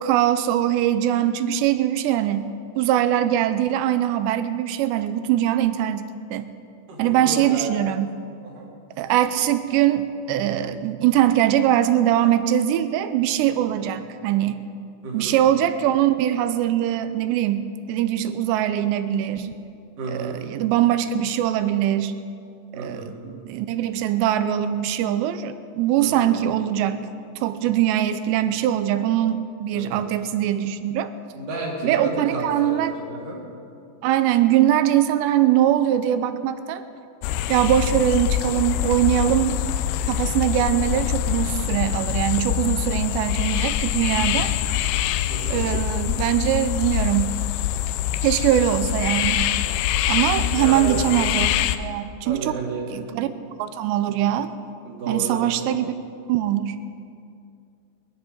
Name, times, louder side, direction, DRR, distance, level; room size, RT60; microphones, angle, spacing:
voice 1, 0.0-6.5 7.0-8.1 9.0-14.7 15.1-19.5 20.1-22.1 22.8-27.1 27.4-31.1 31.8-32.9 34.0-36.8 37.5-39.6 40.1-44.5 45.5-47.4 48.2-49.5 50.1-52.6 52.9-53.3 53.6-54.5 55.1-55.9 56.3-56.8, right 11 dB, 85° right, 11 dB, 2.9 m, -22 dB
voice 2, 6.9-7.7 8.5-8.7 15.0-15.3 20.0-20.4 22.7-23.1 26.0-26.3 29.7-30.1 31.3-32.8 33.1-33.4 45.3-45.6 50.5-51.0 52.2-52.8 54.8-55.4, right 2 dB, 55° right, -4 dB, 4.3 m, -31 dB
sound 1, 37.2-51.8, left 12 dB, 85° left, 2.7 m, -24 dB
20.5 x 12.5 x 5.3 m, 2.4 s
omnidirectional pair, 5.0 m